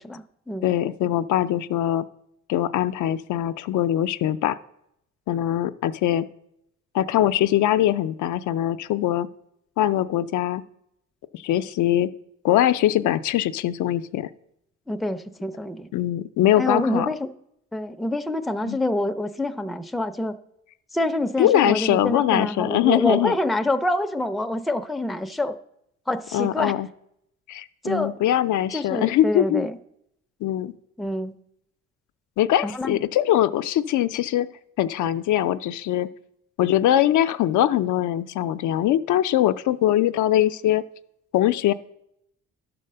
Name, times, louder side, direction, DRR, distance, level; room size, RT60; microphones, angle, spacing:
voice 1, 0.0-0.7 14.9-15.9 16.6-17.3 17.7-20.4 20.9-25.6 26.1-26.8 27.8-28.1 28.7-29.8 31.0-31.3 32.6-33.0, left 1 dB, ahead, 7 dB, 0.4 m, -26 dB
voice 2, 0.6-2.0 2.5-4.6 5.3-6.3 6.9-9.3 9.8-10.6 11.3-12.1 12.4-14.3 15.9-17.1 18.6-18.8 21.4-23.3 26.3-26.9 27.5-29.7 30.4-30.7 32.4-34.5 34.8-36.1 36.6-40.8 41.3-41.7, left 12 dB, 75° left, 11 dB, 0.5 m, -22 dB
11.5 x 4.2 x 6.6 m, 0.78 s
cardioid pair, 90°, 30 cm